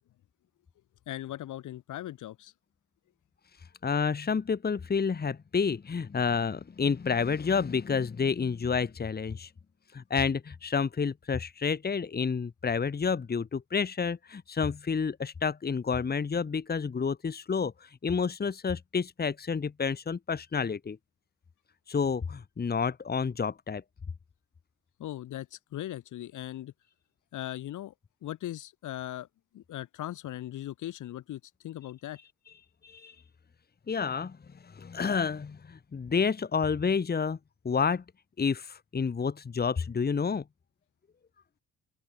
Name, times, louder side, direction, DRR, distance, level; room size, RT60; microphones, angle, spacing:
voice 1, 1.1-2.5 25.0-26.7 27.3-27.9 28.2-29.3 29.5-32.2, left 13 dB, 80° left, 4.7 m, -39 dB
voice 2, 3.8-9.5 9.9-21.0 21.9-23.8 32.8-33.2 33.9-34.4 34.6-37.4 37.7-38.0 38.4-40.4, left 5 dB, 30° left, 1.9 m, -29 dB
open air
cardioid pair, 90°, 30 cm